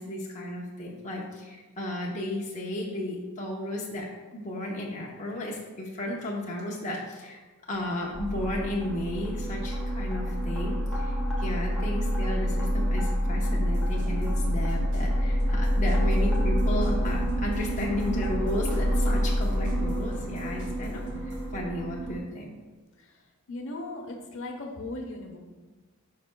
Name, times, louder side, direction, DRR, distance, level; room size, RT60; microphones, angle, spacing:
voice 1, 0.0-7.4 7.7-22.5, left 1 dB, 35° left, -3 dB, 0.9 m, -34 dB
sound 1, 8.1-22.2, equal, 5° left, 1.3 m, -27 dB
sound 2, 13.6-21.5, equal, 80° right, 2.0 m, -46 dB
voice 2, 23.5-25.4, left 2 dB, 60° left, 2 dB, 1.0 m, -38 dB
10.0 x 5.7 x 2.3 m, 1.3 s
head